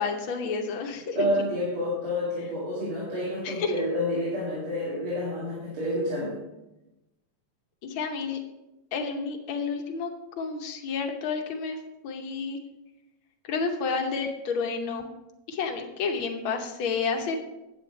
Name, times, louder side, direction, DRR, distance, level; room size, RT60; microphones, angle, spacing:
voice 1, 0.0-1.3 3.4-3.7 7.8-8.4 8.9-10.1 10.4-11.8 12.0-12.6 13.5-15.1 15.5-17.4, left 5 dB, 70° left, 3 dB, 1.2 m, -30 dB
voice 2, 1.1-6.4, left 1 dB, 65° right, -7 dB, 3.4 m, -29 dB
9.5 x 8.5 x 4.0 m, 0.97 s
omnidirectional pair, 3.4 m